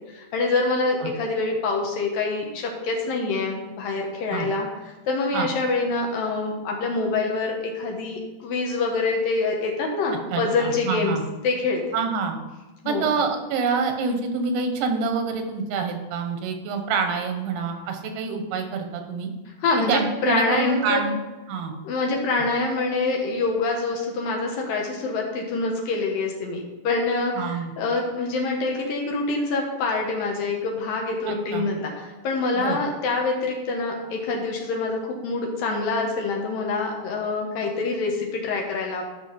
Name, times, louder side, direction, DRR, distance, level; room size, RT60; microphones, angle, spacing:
voice 1, 0.1-4.7 5.1-11.2 11.4-11.8 12.8-13.1 19.6-21.0 21.8-39.0, left 3 dB, 65° left, 0 dB, 2.5 m, -26 dB
voice 2, 10.3-11.2 11.9-12.4 12.9-19.3 19.9-21.2 21.5-21.7 27.4-27.7 31.3-31.6 32.5-32.8, right 4 dB, 85° right, 5 dB, 3.5 m, -26 dB
11.0 x 5.9 x 5.2 m, 1.1 s
omnidirectional pair, 5.2 m